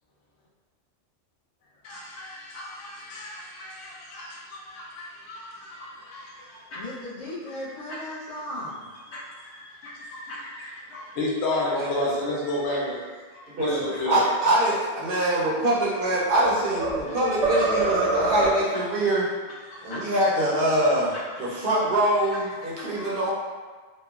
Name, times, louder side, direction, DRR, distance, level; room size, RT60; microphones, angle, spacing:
voice 1, 1.8-6.8 7.5-8.0 9.1-13.0 13.3-14.3 15.1-15.2 17.1-17.6 18.1-18.2 18.7-18.8 19.6-20.1 21.1-21.6 22.3-22.7 23.0-23.1, left 1 dB, 70° left, -5 dB, 0.9 m, -33 dB
voice 2, 6.7-8.8, left 1 dB, 40° left, -7 dB, 0.6 m, -36 dB
voice 3, 11.7-12.1 13.5-13.7 14.1-19.3 19.8-23.3, right 1 dB, 55° right, -6 dB, 0.7 m, -24 dB
sound 1, 15.7-17.1 17.4-18.8, right 2 dB, 85° right, 1.1 m, -25 dB
3.0 x 2.1 x 2.3 m, 1.4 s
omnidirectional pair, 1.2 m